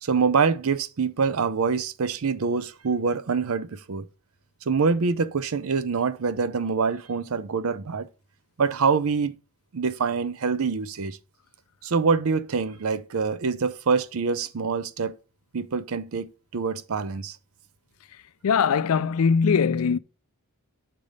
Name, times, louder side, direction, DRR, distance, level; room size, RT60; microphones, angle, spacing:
voice 1, 0.0-4.1 4.7-8.1 8.6-9.4 9.7-11.2 11.8-15.1 15.5-17.4, right 5 dB, 65° right, 0.5 m, -25 dB
voice 2, 18.4-20.0, left 6 dB, 70° left, 0.4 m, -21 dB
7.5 x 3.3 x 5.2 m
head